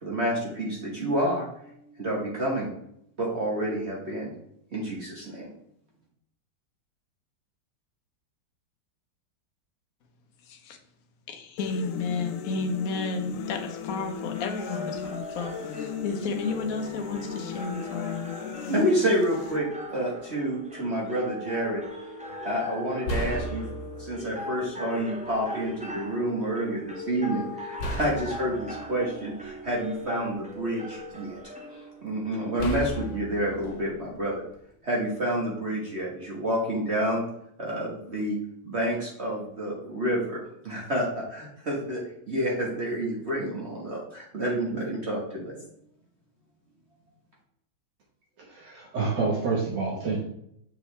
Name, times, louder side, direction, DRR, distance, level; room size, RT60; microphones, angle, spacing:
voice 1, 0.0-1.7 2.0-2.7 3.2-4.3 4.7-5.5 18.7-21.8 22.4-23.7 24.0-31.4 32.0-34.3 34.8-37.2 37.6-38.4 38.6-40.4 40.6-45.5, right 1 dB, 40° right, -3 dB, 1.5 m, -29 dB
voice 2, 10.4-10.8 11.3-18.5, left 4 dB, 55° left, 5 dB, 1.2 m, -32 dB
sound 1, 11.6-19.6, left 8 dB, 90° left, 0.7 m, -37 dB
sound 2, 14.3-33.9, left 1 dB, 5° right, 0.5 m, -40 dB
sound 3, 22.3-22.4 23.0-24.3 25.3-25.4 27.8-30.0 30.5-31.4 32.6-34.7, equal, 75° left, 1.8 m, -35 dB
voice 3, 48.5-50.2, right 4 dB, 70° right, -3 dB, 1.9 m, -28 dB
6.9 x 5.5 x 3.3 m, 0.73 s
omnidirectional pair, 2.0 m